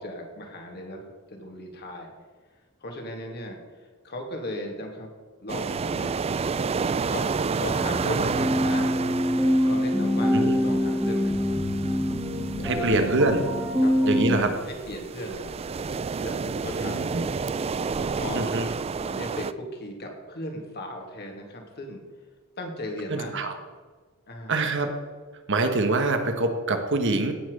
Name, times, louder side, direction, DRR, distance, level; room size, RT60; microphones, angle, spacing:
voice 1, 0.0-2.1 2.8-5.1 5.4-6.2 7.0-7.3 7.5-9.0 9.6-11.4 12.6-13.2 13.8-14.2 14.7-15.5 16.2-17.1 17.9-18.5 19.0-22.0 22.6-23.5 24.3-24.6, left 1 dB, 50° left, 2 dB, 2.5 m, -37 dB
sound 1, 5.5-19.5, right 5 dB, 30° right, 0.4 m, -31 dB
sound 2, 7.6-14.4, equal, 10° right, 1.9 m, -25 dB
voice 2, 12.6-13.4 14.1-14.5 16.8-17.3 18.3-18.7 23.1-23.5 24.5-24.9 25.5-27.3, right 2 dB, 60° right, 6 dB, 1.5 m, -24 dB
16.5 x 6.0 x 6.7 m, 1.4 s
head